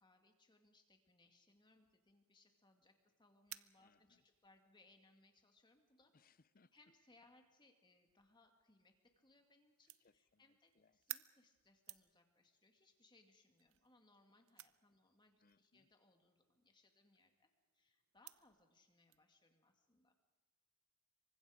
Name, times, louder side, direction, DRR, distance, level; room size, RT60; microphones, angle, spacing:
voice 1, 0.0-6.1 6.7-20.2, left 2 dB, 20° left, 4 dB, 2.2 m, -71 dB
sound 1, 1.5-19.2, right 15 dB, 65° right, 0.8 m, -60 dB
voice 2, 3.8-4.2 6.1-6.7 10.0-11.0 15.4-15.9, left 4 dB, 40° left, 16 dB, 0.6 m, -74 dB
27.0 x 24.5 x 5.1 m, 1.3 s
head